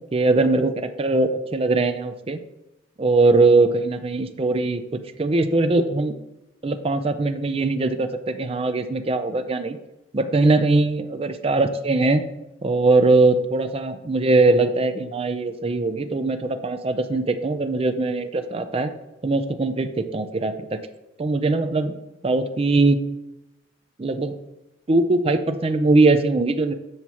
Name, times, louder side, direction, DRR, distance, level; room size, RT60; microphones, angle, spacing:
voice 1, 0.1-2.4 3.0-4.8 5.2-6.2 6.6-9.8 10.1-12.2 12.6-18.9 19.2-20.5 21.2-21.9 22.2-23.0 24.0-24.3 24.9-26.7, right 2 dB, 30° right, 8 dB, 0.5 m, -21 dB
8.0 x 6.9 x 3.0 m, 0.91 s
head